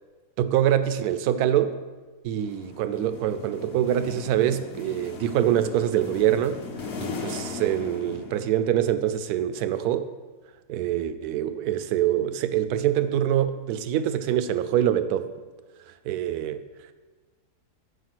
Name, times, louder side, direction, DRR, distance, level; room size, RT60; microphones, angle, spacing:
voice 1, 0.4-1.8 2.2-6.6 7.0-10.1 10.7-15.3 16.0-16.6, right 11 dB, 75° right, 12 dB, 1.1 m, -25 dB
sound 1, 2.4-8.9, left 4 dB, 45° left, 0.9 m, -38 dB
8.2 x 4.8 x 6.0 m, 1.3 s
omnidirectional pair, 1.7 m